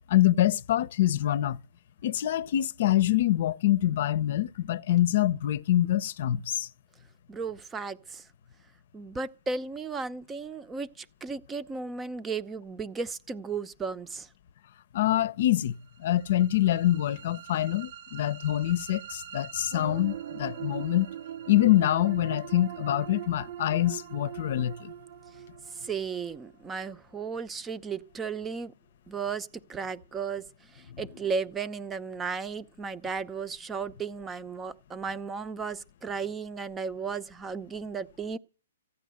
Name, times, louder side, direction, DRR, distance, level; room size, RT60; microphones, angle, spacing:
voice 1, 0.1-1.6 2.0-6.7 14.9-21.1 21.5-24.9 30.9-31.0, left 13 dB, 55° left, 0.8 m, -25 dB
voice 2, 7.3-8.3 8.9-14.3 25.7-28.7 29.1-38.4, right 5 dB, 15° right, 0.8 m, -35 dB
sound 1, 15.9-27.9, right 11 dB, 45° right, 0.6 m, -42 dB
15.0 x 10.0 x 7.8 m
hypercardioid pair, 135°, 0 cm